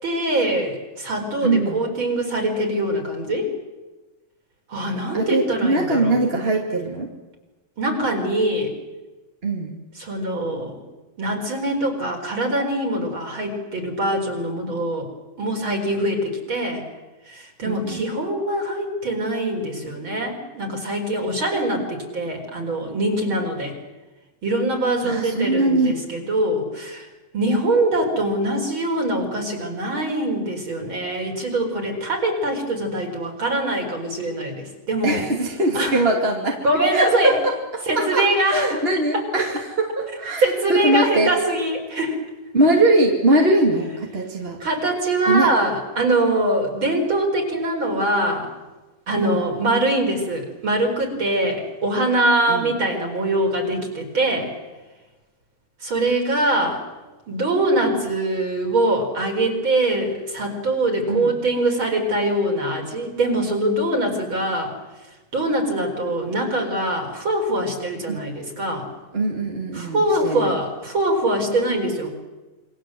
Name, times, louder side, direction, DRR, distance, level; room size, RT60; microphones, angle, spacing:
voice 1, 0.0-3.5 4.7-6.2 7.8-8.7 10.0-10.8 11.2-15.1 15.4-16.9 17.3-23.7 24.4-27.1 27.3-35.2 35.7-36.0 36.6-37.4 37.9-38.8 39.1-39.2 40.4-42.2 44.6-48.5 49.1-54.5 55.8-56.8 57.3-64.7 65.3-68.9 69.7-72.1, right 1 dB, 35° right, 2 dB, 5.2 m, -23 dB
voice 2, 1.4-1.8 5.1-7.1 9.4-9.8 17.6-18.0 25.0-26.0 35.0-36.6 36.9-41.3 42.5-44.6 45.3-45.5 49.1-49.5 52.5-52.7 61.1-61.3 68.1-68.2 69.1-70.6, right 2 dB, 20° right, 0 dB, 2.3 m, -21 dB
28.0 x 23.5 x 7.8 m, 1.2 s
omnidirectional pair, 3.9 m